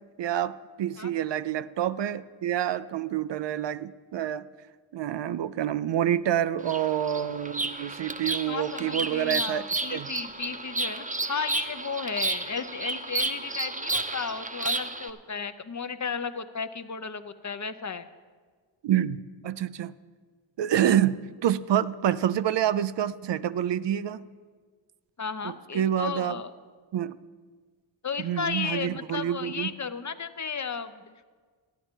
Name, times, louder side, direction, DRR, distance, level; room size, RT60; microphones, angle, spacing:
voice 1, 0.2-4.5 4.9-10.1 18.8-19.9 20.6-24.2 25.4-26.4 26.9-27.2 28.2-29.7, right 10 dB, 60° right, 15 dB, 0.5 m, -27 dB
Bird vocalization bird call bird song, 6.6-15.1, right 2 dB, 15° right, 0.8 m, -32 dB
voice 2, 8.5-18.1 25.2-26.5 28.0-31.3, left 5 dB, 35° left, 11 dB, 0.7 m, -34 dB
14.0 x 10.0 x 4.5 m, 1.5 s
cardioid pair, 55°, 48 cm